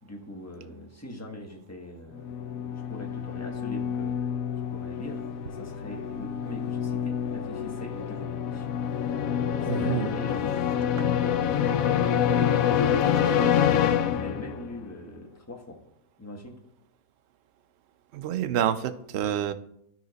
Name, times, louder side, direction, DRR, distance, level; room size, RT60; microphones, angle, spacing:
voice 1, 0.0-4.1 4.6-8.7 9.6-12.6 13.1-15.8 16.2-16.6, left 1 dB, 10° left, 1 dB, 1.0 m, -42 dB
sound 1, 2.1-14.8, left 9 dB, 65° left, 0.9 m, -27 dB
voice 2, 9.7-10.1 11.0-11.1 18.1-19.5, right 10 dB, 75° right, 10 dB, 0.6 m, -28 dB
12.5 x 4.9 x 4.0 m, 0.75 s
omnidirectional pair, 1.8 m